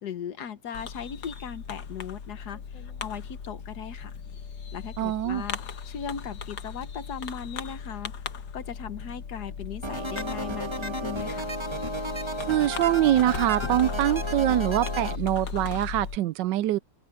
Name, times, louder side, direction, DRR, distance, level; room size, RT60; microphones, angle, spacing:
voice 1, 0.0-4.1 4.7-5.6 5.8-8.1 8.5-11.5, left 7 dB, 65° left, 1.6 m, -38 dB
Fireworks, 0.7-16.2, left 6 dB, 80° left, 2.0 m, -37 dB
voice 2, 5.0-5.4 12.5-16.8, right 13 dB, 90° right, 1.3 m, -24 dB
sound 1, 9.8-15.2, right 1 dB, 15° right, 1.6 m, -33 dB
open air
omnidirectional pair, 1.9 m